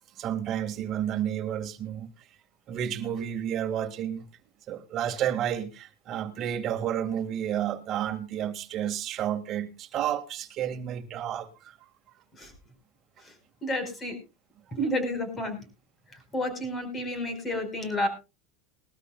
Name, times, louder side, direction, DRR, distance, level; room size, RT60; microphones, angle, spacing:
voice 1, 0.2-2.1 2.7-4.2 4.7-11.8 14.7-14.8, right 10 dB, 40° right, 1.9 m, -31 dB
voice 2, 13.6-14.2 14.7-15.6 16.1-18.1, left 1 dB, 25° left, 4.7 m, -30 dB
21.0 x 13.0 x 2.3 m
supercardioid pair, 125°, 0 cm